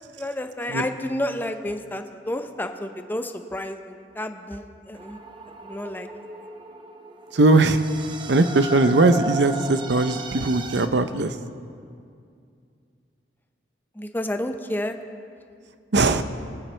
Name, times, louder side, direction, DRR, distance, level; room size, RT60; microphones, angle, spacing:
voice 1, 0.0-5.2 5.6-6.1 13.9-15.0, left 1 dB, 10° left, 7 dB, 0.6 m, -30 dB
sound 1, 4.9-10.9, right 1 dB, 30° right, 0.7 m, -35 dB
voice 2, 7.3-7.8 8.3-11.4 15.9-16.2, right 2 dB, 70° right, 11 dB, 0.7 m, -19 dB
24.0 x 9.1 x 3.3 m, 2.3 s
head